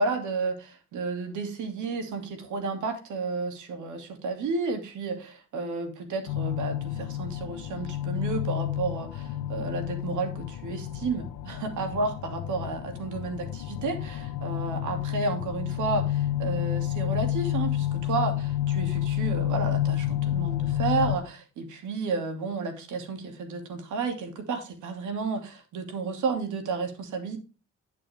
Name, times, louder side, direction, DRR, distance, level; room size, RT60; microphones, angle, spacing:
voice 1, 0.0-27.4, right 4 dB, 75° right, 6 dB, 2.7 m, -32 dB
sound 1, 6.3-21.2, left 12 dB, 80° left, 1.0 m, -30 dB
10.5 x 6.4 x 3.5 m, 0.32 s
cardioid pair, 90°, 30 cm